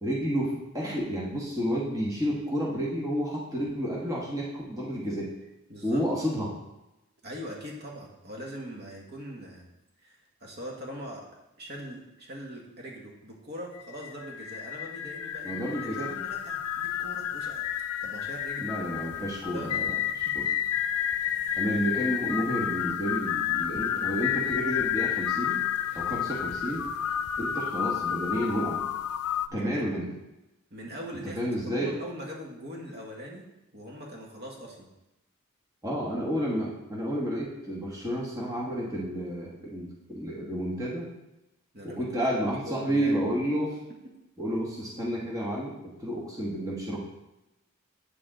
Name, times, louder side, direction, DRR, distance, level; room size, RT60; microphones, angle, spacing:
voice 1, 0.0-5.3 5.8-6.5 15.4-16.1 18.6-20.5 21.5-25.6 25.9-26.9 27.4-28.8 29.5-30.1 31.3-31.9 35.8-41.1 41.8-43.8 44.4-47.0, equal, 15° right, -5 dB, 1.2 m, -30 dB
voice 2, 5.7-6.1 7.2-9.6 10.0-11.3 11.6-17.6 18.0-18.7 19.4-19.7 20.2-20.5 21.3-21.6 29.5-29.8 30.7-33.5 33.7-34.9 41.7-42.3 42.7-43.2, equal, 45° right, -1 dB, 1.4 m, -42 dB
sound 1, 13.8-29.5, left 10 dB, 85° left, 0.4 m, -31 dB
8.6 x 6.8 x 3.8 m, 0.94 s
head